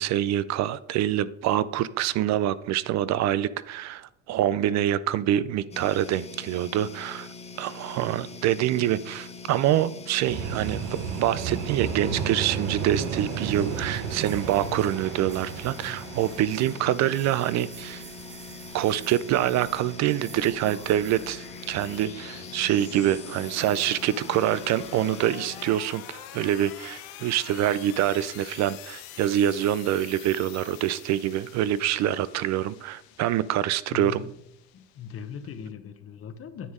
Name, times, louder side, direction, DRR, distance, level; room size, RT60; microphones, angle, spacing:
voice 1, 0.0-7.3 7.6-18.0 18.7-34.2, right 12 dB, 55° right, 17 dB, 0.4 m, -26 dB
sound 1, 5.7-25.7, left 4 dB, 20° left, 0.8 m, -43 dB
sound 2, 10.2-22.1 22.4-22.9 24.8-25.1, right 6 dB, 85° right, 1.1 m, -35 dB
sound 3, 17.7-35.6, left 11 dB, 90° left, 0.9 m, -46 dB
voice 2, 33.9-34.3 34.7-36.7, left 7 dB, 40° left, 10 dB, 1.0 m, -39 dB
10.0 x 7.2 x 3.6 m, 0.78 s
cardioid pair, 115°, 33 cm